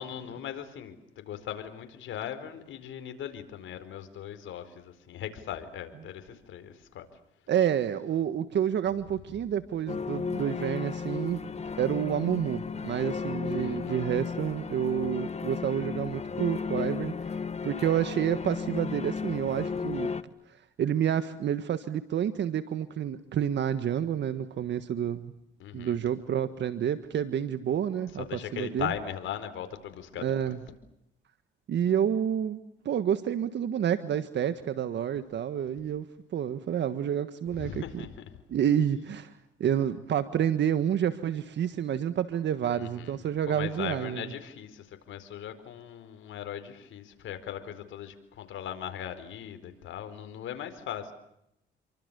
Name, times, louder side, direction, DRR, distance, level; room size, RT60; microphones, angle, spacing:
voice 1, 0.0-7.1 13.6-14.1 25.6-26.0 28.2-30.6 37.5-38.3 42.7-43.2 43.5-51.1, left 9 dB, 75° left, 9 dB, 4.6 m, -39 dB
voice 2, 7.5-11.5 11.8-20.1 20.5-25.3 25.7-28.9 30.2-30.6 31.7-36.1 36.3-38.0 38.5-39.3 39.6-44.3, right 9 dB, 65° right, 11 dB, 1.6 m, -29 dB
sound 1, 9.9-20.2, left 5 dB, 35° left, 1.7 m, -34 dB
29.0 x 24.0 x 7.0 m, 0.80 s
cardioid pair, 90°, 20 cm